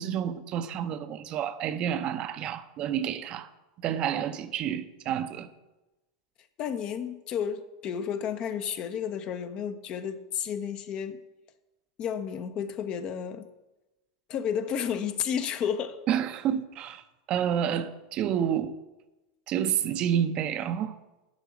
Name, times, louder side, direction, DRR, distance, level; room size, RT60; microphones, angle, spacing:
voice 1, 0.0-3.5 3.8-5.5 16.1-17.0 17.3-18.7 19.5-21.0, right 9 dB, 45° right, 0.7 m, -29 dB
voice 2, 6.6-11.2 12.0-13.5 14.3-16.0, left 8 dB, 45° left, 0.9 m, -32 dB
11.5 x 4.6 x 7.9 m
hypercardioid pair, 100°, 2 cm